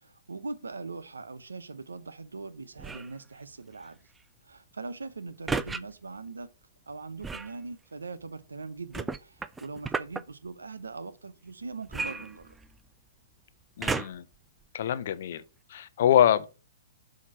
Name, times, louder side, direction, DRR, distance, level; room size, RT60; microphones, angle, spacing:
voice 1, 0.0-4.1 4.4-6.5 6.9-12.5, right 3 dB, 90° right, 0.8 m, -41 dB
sound 1, 2.8-3.2 5.5-5.8 7.2-7.6 8.9-10.2 11.9-12.9 13.8-14.3 15.0-15.1, right 4 dB, 10° right, 0.3 m, -33 dB
voice 2, 13.8-14.2 14.7-15.4 15.7-16.5, left 10 dB, 55° left, 0.6 m, -24 dB
7.3 x 2.9 x 6.0 m
hypercardioid pair, 130°, 0 cm